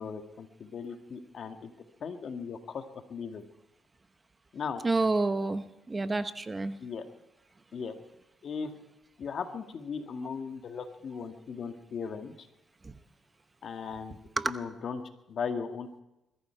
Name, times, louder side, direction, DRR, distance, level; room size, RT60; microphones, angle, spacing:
voice 1, 0.0-1.7 2.0-3.4 4.5-4.8 6.8-7.1 7.7-7.9 8.4-8.7 9.2-12.5 13.6-14.2 14.4-15.0 15.3-16.0, left 5 dB, 55° left, 6 dB, 1.8 m, -37 dB
voice 2, 4.8-6.8 12.8-12.9 14.4-14.5, right 3 dB, 25° right, 11 dB, 0.9 m, -29 dB
21.5 x 14.0 x 4.6 m, 0.89 s
cardioid pair, 90°, 0 cm